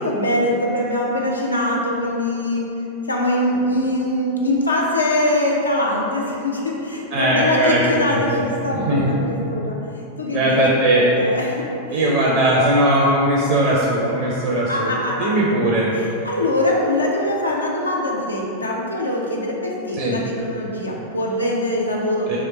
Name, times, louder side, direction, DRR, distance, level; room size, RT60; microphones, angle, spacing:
voice 1, 0.0-2.7 3.1-9.8 10.2-10.6 11.2-12.1 14.7-15.3 15.9-22.3, left 1 dB, 80° left, -2 dB, 0.5 m, -23 dB
voice 2, 7.1-7.8 8.1-8.4 8.7-9.2 10.3-11.1 11.9-14.9 15.2-15.9 19.9-20.2 22.3-22.4, right 1 dB, 45° right, -4 dB, 0.5 m, -19 dB
3.1 x 3.0 x 3.8 m, 2.9 s
figure-of-eight pair, 90°, 0 cm